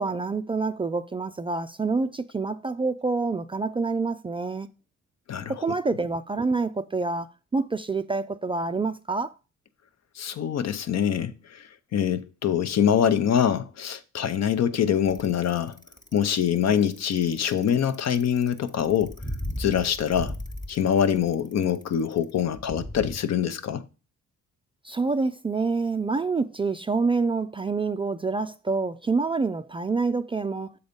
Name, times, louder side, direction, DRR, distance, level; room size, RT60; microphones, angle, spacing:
voice 1, 0.0-4.7 5.5-7.3 7.5-9.3 24.8-30.7, right 4 dB, 20° right, 0.3 m, -27 dB
voice 2, 5.3-5.6 10.2-15.8 16.1-19.2 19.6-20.3 20.7-23.8, left 9 dB, 60° left, 0.7 m, -24 dB
Bicycle, 15.1-23.1, equal, 15° left, 1.0 m, -37 dB
7.0 x 4.0 x 5.2 m
cardioid pair, 90°, 30 cm